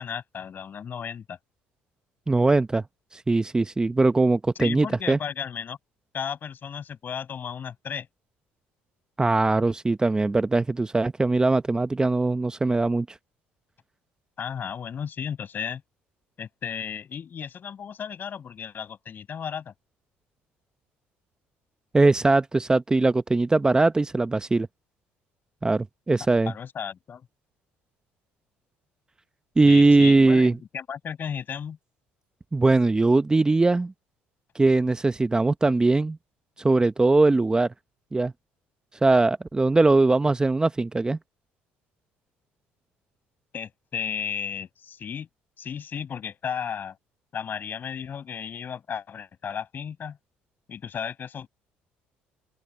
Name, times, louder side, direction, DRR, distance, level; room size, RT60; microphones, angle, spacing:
voice 1, 0.0-1.4 4.6-5.8 6.1-8.1 14.4-15.8 16.4-19.7 26.5-27.3 29.7-31.8 43.5-45.3 45.6-47.0 47.3-50.2 50.7-51.5, left 7 dB, 45° left, 6.0 m, -34 dB
voice 2, 2.3-2.8 3.1-5.2 9.2-13.1 21.9-24.7 25.6-26.5 29.6-30.5 32.5-33.9 34.5-36.2 36.6-37.7 38.1-38.3 39.0-41.2, right 3 dB, 15° right, 0.8 m, -21 dB
open air
supercardioid pair, 85°, 5 cm